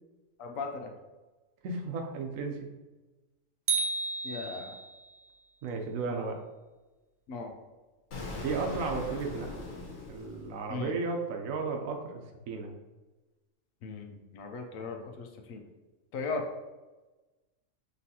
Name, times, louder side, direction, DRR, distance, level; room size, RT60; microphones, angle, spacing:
voice 1, 0.4-0.9 4.2-4.7 7.3-7.5 10.7-10.9 13.8-15.6 16.1-16.5, left 4 dB, 85° left, 3 dB, 1.1 m, -37 dB
voice 2, 1.6-2.7 5.6-6.4 8.4-9.8 10.1-12.7, right 4 dB, 85° right, 3 dB, 1.1 m, -34 dB
sound 1, 3.7-5.1, right 4 dB, 60° right, 0.8 m, -32 dB
Explosion, 8.1-11.0, left 2 dB, 60° left, 1.3 m, -40 dB
5.5 x 3.1 x 2.8 m, 1.1 s
omnidirectional pair, 1.4 m